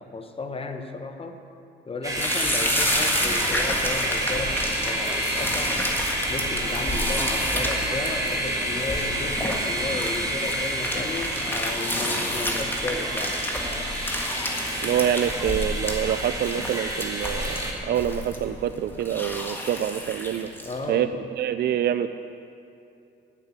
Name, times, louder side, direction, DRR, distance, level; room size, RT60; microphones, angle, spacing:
voice 1, 0.0-1.4 1.9-5.8 6.3-13.4 20.6-21.1, left 3 dB, 30° left, 6 dB, 1.1 m, -34 dB
sound 1, 2.0-17.7, right 1 dB, 15° right, 2.2 m, -29 dB
sound 2, 2.1-20.8, left 1 dB, 10° left, 1.7 m, -30 dB
voice 2, 14.8-20.5 20.9-22.1, right 10 dB, 55° right, 10 dB, 0.4 m, -26 dB
9.8 x 7.1 x 8.9 m, 2.6 s
cardioid pair, 90°, 20 cm